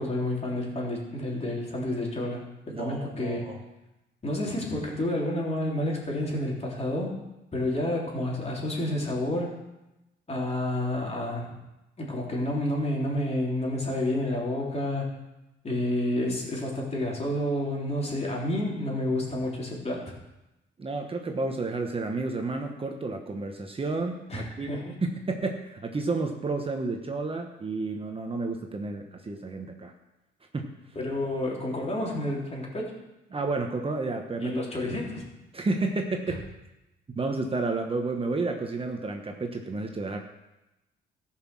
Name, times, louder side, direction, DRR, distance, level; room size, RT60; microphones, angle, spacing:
voice 1, 0.0-2.4 2.8-3.4 4.2-7.1 7.5-9.6 10.3-11.5 12.0-15.1 15.6-20.1 24.3-24.9 31.0-32.9 34.4-35.2 36.3-36.4, left 1 dB, 30° left, -3 dB, 3.6 m, -29 dB
voice 2, 2.7-3.6 20.8-24.7 25.0-29.9 30.5-30.7 33.3-34.6 35.5-36.4 37.2-40.2, right 3 dB, 30° right, 3 dB, 1.1 m, -31 dB
14.5 x 5.8 x 6.2 m, 0.98 s
cardioid pair, 90°, 20 cm